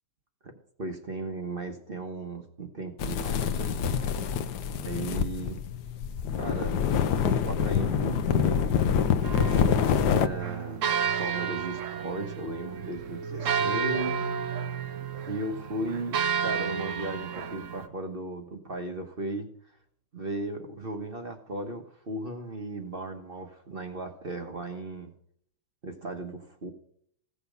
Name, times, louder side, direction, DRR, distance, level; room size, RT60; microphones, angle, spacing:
voice 1, 0.8-4.4 4.8-5.6 6.4-8.7 10.1-10.9 11.2-14.2 15.3-19.5 20.1-25.1 25.8-26.7, right 2 dB, 30° right, 5 dB, 1.2 m, -36 dB
sound 1, 3.0-10.3, left 8 dB, 65° left, 1.1 m, -26 dB
sound 2, 9.2-17.9, right 7 dB, 65° right, 0.7 m, -31 dB
16.0 x 7.0 x 5.3 m, 0.65 s
omnidirectional pair, 2.4 m